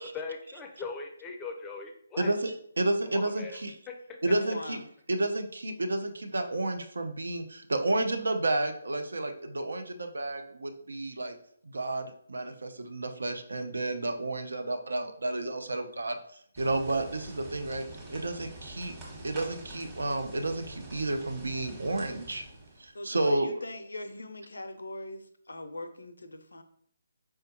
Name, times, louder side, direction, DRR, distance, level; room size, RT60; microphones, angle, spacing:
voice 1, 0.0-2.3 3.1-3.6 3.9-4.0, left 4 dB, 15° left, 2 dB, 0.5 m, -40 dB
voice 2, 2.2-3.8 4.2-4.8 5.1-11.4 11.6-16.2 16.6-17.8 18.1-18.9 19.2-22.4 22.8-23.5, right 2 dB, 75° right, 6 dB, 0.5 m, -31 dB
voice 3, 4.3-4.9 22.9-26.6, left 2 dB, 80° left, 9 dB, 0.4 m, -41 dB
sound 1, 16.6-22.9, right 1 dB, 15° right, 1.1 m, -45 dB
4.5 x 2.2 x 2.8 m, 0.65 s
figure-of-eight pair, 145°, 0 cm